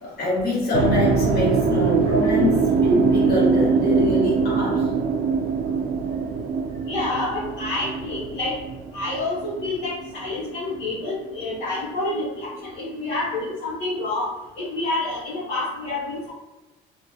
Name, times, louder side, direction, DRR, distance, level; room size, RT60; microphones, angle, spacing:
voice 1, 0.0-4.9, left 1 dB, 55° left, -4 dB, 1.3 m, -24 dB
sound 1, 0.7-10.9, right 5 dB, 50° right, 0.4 m, -23 dB
voice 2, 6.9-8.5 8.9-12.5 12.8-14.3 14.6-16.3, left 2 dB, 80° left, -7 dB, 0.8 m, -28 dB
2.8 x 2.0 x 2.7 m, 1.1 s
supercardioid pair, 75°, 19 cm